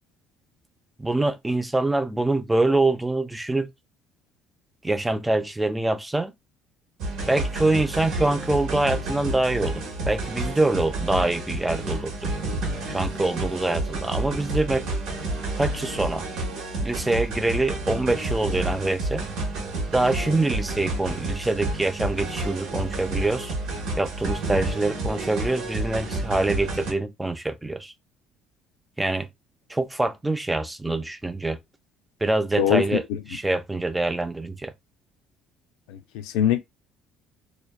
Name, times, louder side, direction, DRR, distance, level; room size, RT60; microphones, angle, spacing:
voice 1, 1.0-3.7 4.8-6.3 7.3-12.3 12.9-14.9 15.6-16.3 16.8-19.2 19.9-23.5 24.0-27.9 29.0-29.3 29.7-31.6 32.2-34.7, right 2 dB, 10° right, 0.3 m, -25 dB
sound 1, 7.0-26.9, right 2 dB, 75° right, 0.8 m, -30 dB
voice 2, 35.9-36.6, left 10 dB, 90° left, 0.3 m, -22 dB
2.6 x 2.2 x 2.2 m
cardioid pair, 105°, 0 cm